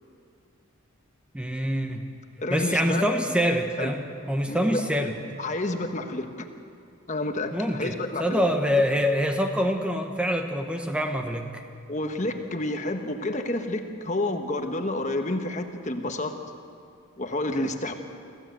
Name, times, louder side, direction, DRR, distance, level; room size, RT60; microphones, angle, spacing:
voice 1, 1.3-2.0 2.5-5.1 7.5-11.6, equal, 5° right, 4 dB, 1.1 m, -25 dB
voice 2, 2.4-3.1 3.8-3.9 4.5-4.8 5.4-6.5 7.1-8.4 11.9-16.3 17.2-17.9, left 2 dB, 35° left, 5 dB, 1.3 m, -29 dB
26.0 x 15.5 x 8.1 m, 2.4 s
head